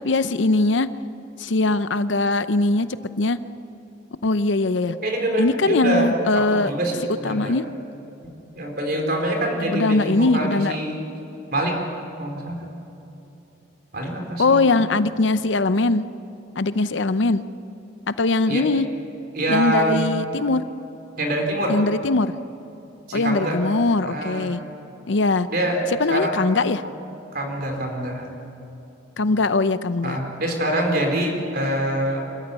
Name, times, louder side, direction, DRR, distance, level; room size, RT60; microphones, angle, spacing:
voice 1, 0.0-0.9 1.4-2.9 3.2-3.4 4.2-4.9 5.4-6.7 7.2-7.6 9.7-10.7 14.4-16.0 16.6-17.4 18.1-18.9 19.5-20.6 21.7-22.3 23.1-24.6 25.1-25.5 26.0-26.8 29.2-30.2, left 3 dB, 70° left, 13 dB, 0.7 m, -21 dB
voice 2, 5.0-6.1 6.3-7.6 8.5-11.0 11.5-11.8 12.2-12.6 13.9-14.8 18.5-18.7 19.3-20.1 21.2-21.8 23.1-23.6 24.0-24.5 25.5-25.8 26.1-26.4 27.3-28.3 30.0-32.2, right 1 dB, 55° right, 2 dB, 4.2 m, -25 dB
25.5 x 14.5 x 9.6 m, 2.9 s
head